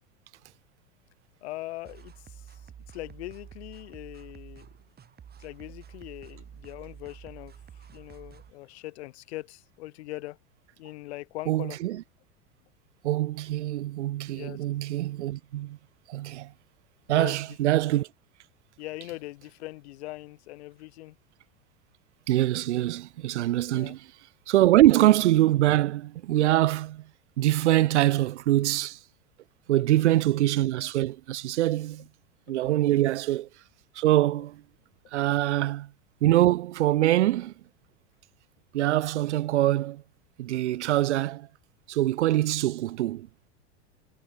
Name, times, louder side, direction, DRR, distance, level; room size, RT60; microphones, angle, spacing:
voice 1, 1.4-2.6 2.9-4.7 5.4-7.6 7.9-10.4 10.8-12.0 14.3-14.6 17.1-17.4 18.8-21.2 23.7-23.9 29.7-29.8 32.0-32.1 32.5-32.9 35.6-35.7, left 18 dB, 70° left, 2.3 m, -41 dB
sound 1, 1.8-8.5, right 8 dB, 25° right, 4.2 m, -49 dB
voice 2, 11.5-12.0 13.0-15.8 16.1-16.5 17.1-18.1 22.3-24.0 24.5-27.0 27.4-29.0 29.7-32.1 32.5-33.5 34.0-34.6 35.1-35.9 36.2-37.5 38.7-40.0 40.4-41.5 41.9-43.3, right 14 dB, 85° right, 0.6 m, -24 dB
hypercardioid pair, 100°, 34 cm